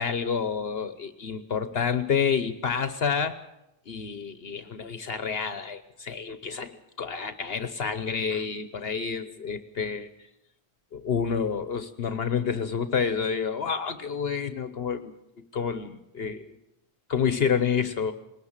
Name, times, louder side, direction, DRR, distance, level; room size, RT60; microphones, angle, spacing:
voice 1, 0.0-3.4 3.9-10.1 10.9-15.1 15.5-16.6 17.1-18.1, left 6 dB, 65° left, 11 dB, 1.1 m, -29 dB
20.5 x 19.0 x 7.4 m, 0.86 s
omnidirectional pair, 1.1 m